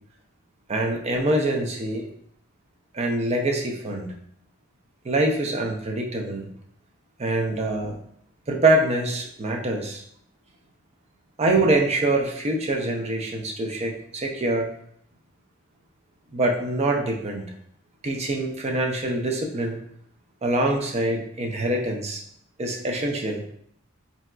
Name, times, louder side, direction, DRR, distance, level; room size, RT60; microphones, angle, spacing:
voice 1, 0.7-2.1 2.9-4.1 5.0-6.5 7.2-8.0 8.5-10.0 11.4-14.7 16.3-17.5 18.0-19.8 20.4-22.2 22.6-23.4, right 2 dB, 30° right, 1 dB, 0.4 m, -24 dB
3.9 x 2.3 x 2.3 m, 0.67 s
head